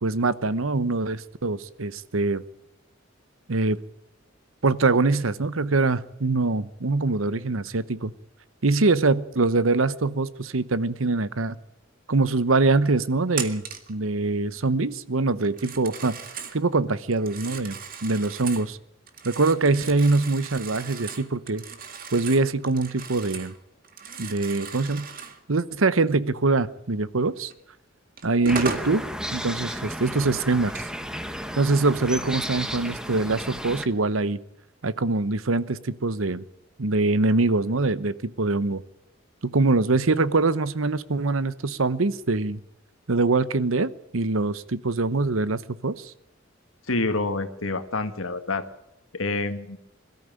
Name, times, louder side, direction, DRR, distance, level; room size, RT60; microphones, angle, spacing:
voice 1, 0.0-2.4 3.5-3.8 4.6-8.1 8.6-11.6 12.1-16.1 16.5-18.8 19.2-21.6 22.1-23.5 24.2-25.1 25.5-27.5 28.2-29.1 29.3-30.9 31.6-34.4 34.8-36.4 36.8-38.8 39.5-42.6 43.1-46.1, right 3 dB, 80° right, 16 dB, 1.0 m, -23 dB
Telephone, 13.3-13.9 15.4-16.6 17.1-18.7 19.1-23.6 23.8-25.4 27.5-27.6 28.2-28.9, right 5 dB, 45° right, 2.0 m, -36 dB
sound 1, 28.5-33.8, equal, 5° right, 1.3 m, -33 dB
voice 2, 46.9-48.6 49.1-49.8, left 3 dB, 85° left, 9 dB, 1.8 m, -27 dB
21.5 x 13.5 x 9.0 m, 0.83 s
head